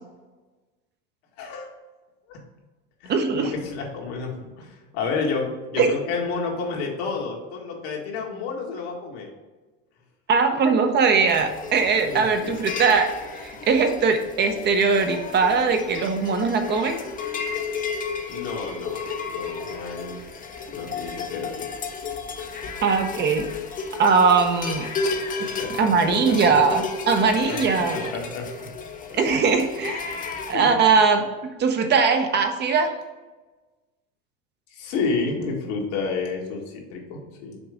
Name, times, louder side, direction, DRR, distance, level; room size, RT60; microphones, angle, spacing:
voice 1, 1.4-1.7 2.3-2.4 3.0-9.3 12.1-12.5 18.3-20.2 20.7-21.7 25.0-26.6 27.2-28.7 29.1-29.2 30.5-30.8 34.7-37.6, left 4 dB, 75° left, -1 dB, 1.8 m, -31 dB
voice 2, 3.1-3.5 5.8-5.9 10.3-13.1 13.3-17.0 22.8-23.5 24.0-24.9 25.8-28.1 29.2-30.2 30.5-31.2 31.6-32.9, right 5 dB, 30° right, 5 dB, 0.8 m, -20 dB
sound 1, 11.3-30.5, left 4 dB, 25° left, 0.7 m, -33 dB
6.1 x 3.9 x 5.0 m, 1.2 s
supercardioid pair, 120°, 32 cm